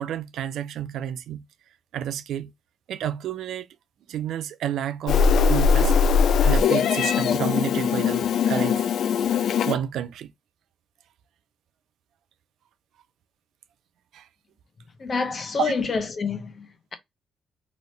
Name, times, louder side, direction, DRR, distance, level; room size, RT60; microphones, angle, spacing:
voice 1, 0.0-1.5 1.9-2.5 2.9-3.7 4.1-5.9 6.4-8.8 9.2-10.3 14.1-14.3 15.6-15.8, right 10 dB, 85° right, 0.4 m, -30 dB
Meow, 5.1-9.7, left 6 dB, 75° left, 0.3 m, -20 dB
voice 2, 15.0-16.7, left 5 dB, 45° left, 0.8 m, -27 dB
3.1 x 2.7 x 3.1 m
cardioid pair, 95°, 0 cm